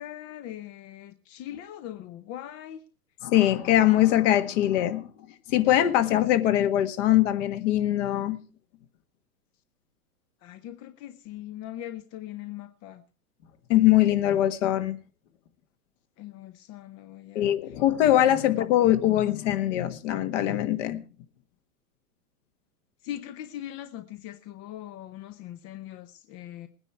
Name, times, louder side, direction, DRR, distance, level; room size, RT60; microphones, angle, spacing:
voice 1, 0.0-2.8 10.4-13.0 16.2-17.5 18.4-18.7 23.0-26.7, left 12 dB, 30° left, 0.9 m, -41 dB
voice 2, 3.2-5.1 5.5-8.4 13.7-15.0 17.4-21.0, left 13 dB, 50° left, 1.7 m, -22 dB
19.5 x 9.9 x 4.6 m
hypercardioid pair, 110°, 46 cm